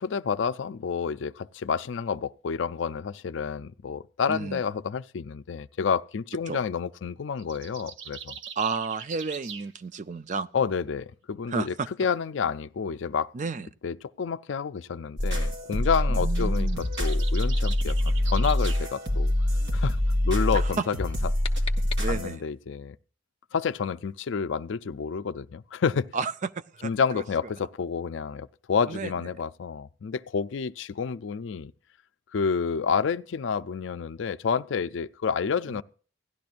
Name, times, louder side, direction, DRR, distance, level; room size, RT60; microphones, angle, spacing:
voice 1, 0.0-8.4 10.5-13.3 13.8-16.7 17.0-19.3 19.7-20.0 20.2-21.1 22.1-23.0 23.5-26.1 26.8-31.7 32.3-35.8, left 6 dB, 75° left, 0.4 m, -29 dB
voice 2, 4.3-4.6 6.5-6.6 8.6-10.5 11.5-11.9 13.3-13.7 16.1-16.8 20.5-20.8 22.0-22.4 26.1-27.2 28.9-29.3 35.7-35.8, right 4 dB, 40° right, 0.4 m, -32 dB
sound 1, 7.4-9.7 16.3-18.9, right 7 dB, 80° right, 1.0 m, -41 dB
sound 2, 15.2-22.3, left 1 dB, 60° right, 2.3 m, -25 dB
sound 3, 20.9-22.6, left 6 dB, 30° left, 0.8 m, -41 dB
16.5 x 12.0 x 2.5 m
head